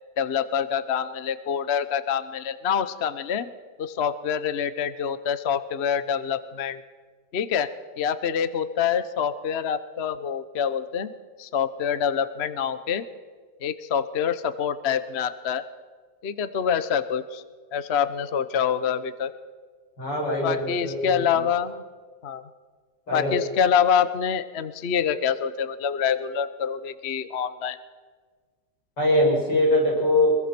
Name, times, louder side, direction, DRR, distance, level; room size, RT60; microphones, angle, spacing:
voice 1, 0.2-3.5 3.8-6.8 7.3-7.7 8.0-13.0 13.6-15.6 16.2-17.4 17.7-19.3 20.4-21.8 22.2-22.4 23.1-27.8, left 7 dB, 45° left, 13 dB, 1.0 m, -26 dB
voice 2, 20.0-21.4 23.1-23.4 29.0-30.4, left 1 dB, 90° left, -2 dB, 8.0 m, -22 dB
24.0 x 22.0 x 6.1 m, 1.5 s
omnidirectional pair, 1.9 m